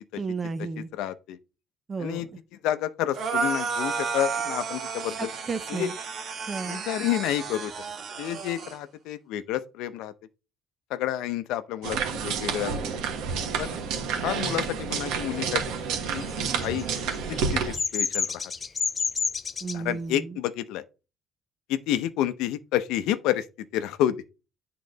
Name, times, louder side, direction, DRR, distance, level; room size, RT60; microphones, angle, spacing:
voice 1, 0.1-0.9 1.9-2.4 5.1-5.9 6.5-6.9 19.6-20.4, right 4 dB, 20° right, 0.6 m, -33 dB
voice 2, 1.0-1.4 2.0-2.3 2.6-5.3 5.8-5.9 6.7-7.7 8.2-10.1 10.9-12.0 12.2-12.8 13.6-13.7 14.2-15.6 16.1-16.9 17.3-17.6 17.9-18.4 19.7-20.8 21.7-23.4 23.7-24.2, left 12 dB, 80° left, 0.6 m, -29 dB
sound 1, 3.1-8.8, right 5 dB, 40° right, 1.2 m, -32 dB
sound 2, 11.8-17.8, right 6 dB, 75° right, 1.5 m, -29 dB
Bird vocalization bird call bird song, 16.0-19.8, left 5 dB, 25° left, 0.4 m, -29 dB
8.6 x 3.8 x 3.9 m
cardioid pair, 160°, 0 cm